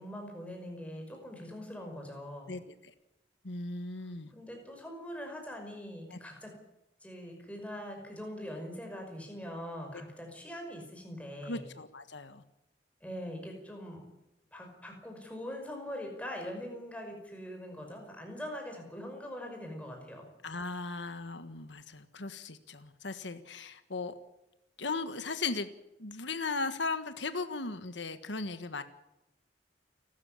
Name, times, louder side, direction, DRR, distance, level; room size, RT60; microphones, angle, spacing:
voice 1, 0.0-2.6 4.3-6.6 7.0-11.6 13.0-14.1 14.5-20.3, equal, 5° left, 2 dB, 5.5 m, -42 dB
voice 2, 2.5-2.9 3.4-4.3 6.1-6.2 11.4-12.4 20.4-24.1 24.8-25.7 26.0-28.8, left 3 dB, 85° left, 10 dB, 1.5 m, -37 dB
29.0 x 13.5 x 8.8 m, 0.92 s
head